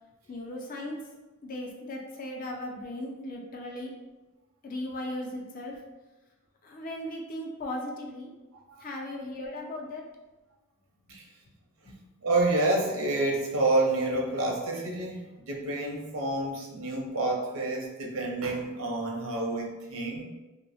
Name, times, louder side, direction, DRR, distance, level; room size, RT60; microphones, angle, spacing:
voice 1, 0.3-1.0 1.4-3.9 4.6-5.7 6.6-8.3 8.8-10.0 11.1-11.2 11.9-12.0, left 1 dB, 40° left, 0 dB, 0.4 m, -37 dB
voice 2, 8.5-8.8 11.1-11.2 12.2-20.2, right 2 dB, 85° right, -1 dB, 0.6 m, -28 dB
2.6 x 2.0 x 2.7 m, 1.1 s
head